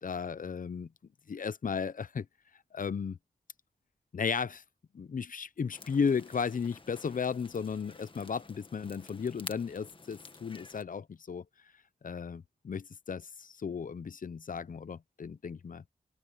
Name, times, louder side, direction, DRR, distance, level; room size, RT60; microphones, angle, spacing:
voice 1, 0.0-0.9 1.3-2.3 2.7-3.2 4.1-4.6 4.9-11.4 12.0-15.8, left 6 dB, 65° left, 0.7 m, -35 dB
sound 1, 5.7-10.8, left 3 dB, 35° left, 1.7 m, -50 dB
wide cardioid pair, 75°, 15 cm